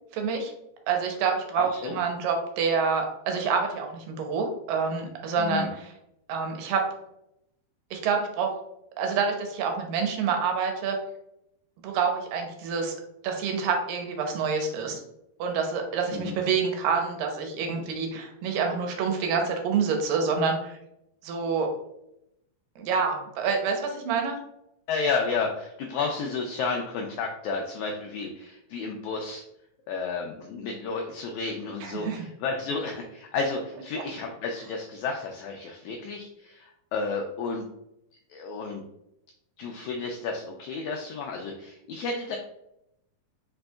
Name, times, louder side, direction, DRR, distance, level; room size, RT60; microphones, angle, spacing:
voice 1, 0.1-0.5 0.9-5.8 6.3-6.8 7.9-8.5 9.0-11.0 11.8-13.0 13.2-15.0 15.4-20.8 21.2-21.7 22.8-24.4 31.8-32.3, right 5 dB, 85° right, 3 dB, 2.4 m, -27 dB
voice 2, 1.6-2.0 5.4-5.7 16.1-16.3 24.9-29.4 29.9-37.7 38.3-38.8 39.6-42.4, left 4 dB, 90° left, 1 dB, 1.7 m, -32 dB
5.0 x 4.3 x 2.3 m, 0.82 s
omnidirectional pair, 3.9 m